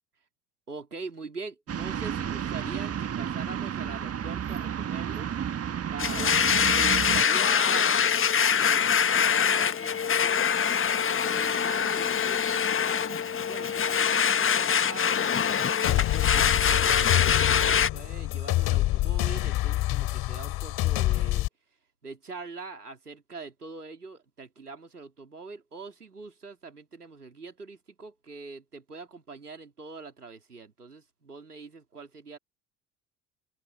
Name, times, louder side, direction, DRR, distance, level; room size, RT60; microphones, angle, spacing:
voice 1, 0.7-5.3 5.9-8.1 8.5-10.5 11.1-15.3 15.8-21.5 22.0-32.4, right 3 dB, 90° right, 3.9 m, -43 dB
sound 1, 1.7-7.2, right 8 dB, 30° right, 1.8 m, -32 dB
Domestic sounds home sounds, 6.0-17.9, left 7 dB, 30° left, 1.6 m, -24 dB
sound 2, 15.8-21.5, left 16 dB, 55° left, 3.8 m, -26 dB
open air
figure-of-eight pair, 60°, 45 cm